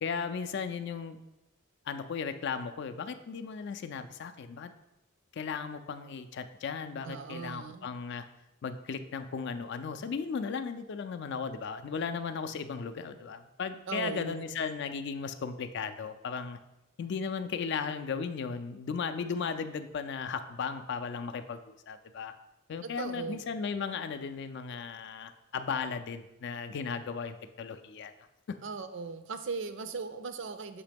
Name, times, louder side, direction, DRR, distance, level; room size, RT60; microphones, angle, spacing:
voice 1, 0.0-1.2 1.9-4.7 5.3-8.2 8.6-16.6 17.0-22.3 22.7-28.1 28.5-28.6, left 5 dB, 55° left, 9 dB, 0.4 m, -36 dB
voice 2, 7.0-7.9 13.9-14.6 22.8-23.4 28.6-30.8, right 4 dB, 60° right, 10 dB, 0.4 m, -38 dB
6.6 x 2.9 x 5.1 m, 0.94 s
head